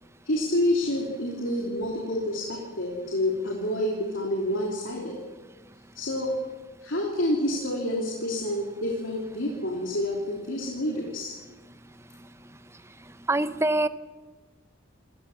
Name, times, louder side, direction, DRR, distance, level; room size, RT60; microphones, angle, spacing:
voice 1, 0.3-5.1 5.9-6.3 6.8-11.3, left 1 dB, 80° left, -2 dB, 3.3 m, -28 dB
voice 2, 13.3-13.9, right 2 dB, 15° right, 12 dB, 0.7 m, -23 dB
27.0 x 15.0 x 7.3 m, 1.3 s
head